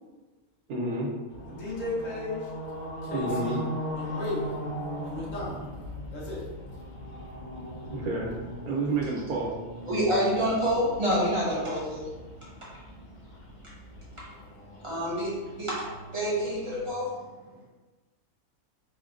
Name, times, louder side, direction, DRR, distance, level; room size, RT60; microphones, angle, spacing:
voice 1, 0.7-1.1 3.1-3.6 7.9-8.3 8.7-9.5, right 2 dB, 90° right, -2 dB, 1.3 m, -29 dB
sound 1, 1.3-16.9, equal, 85° left, 0.4 m, -39 dB
voice 2, 1.4-2.5 3.0-3.7 4.0-4.6 5.0-5.6 6.1-6.4, left 2 dB, 65° left, -5 dB, 1.3 m, -35 dB
voice 3, 9.9-12.1 12.4-12.5 14.8-15.8 16.1-17.1, equal, 25° right, -7 dB, 0.8 m, -27 dB
4.6 x 2.1 x 2.4 m, 1.2 s
omnidirectional pair, 1.5 m